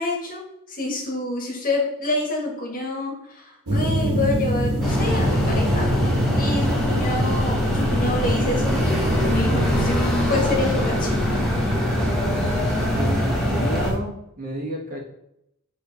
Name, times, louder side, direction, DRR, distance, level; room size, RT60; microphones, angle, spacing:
voice 1, 0.0-9.9 10.3-11.2, left 2 dB, 40° left, -1 dB, 1.5 m, -27 dB
sound 1, 3.7-14.0, equal, 85° right, 1.3 m, -26 dB
sound 2, 4.8-13.9, left 1 dB, ahead, 1.2 m, -23 dB
voice 2, 13.0-14.1 14.4-15.0, right 1 dB, 40° right, -1 dB, 1.5 m, -30 dB
7.9 x 3.2 x 4.0 m, 0.79 s
head